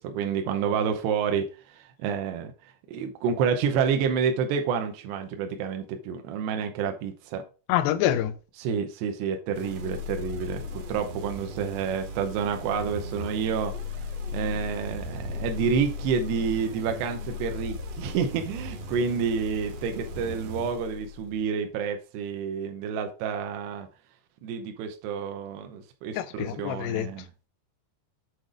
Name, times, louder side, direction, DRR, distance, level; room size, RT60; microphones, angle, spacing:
voice 1, 0.0-2.5 2.9-7.4 8.6-13.7 14.3-23.9 24.4-27.3, right 6 dB, 80° right, 2.8 m, -29 dB
voice 2, 7.7-8.3 26.1-27.1, left 12 dB, 85° left, 2.1 m, -26 dB
sound 1, 9.5-21.5, left 3 dB, 65° right, 2.4 m, -37 dB
8.1 x 3.9 x 4.9 m
omnidirectional pair, 4.9 m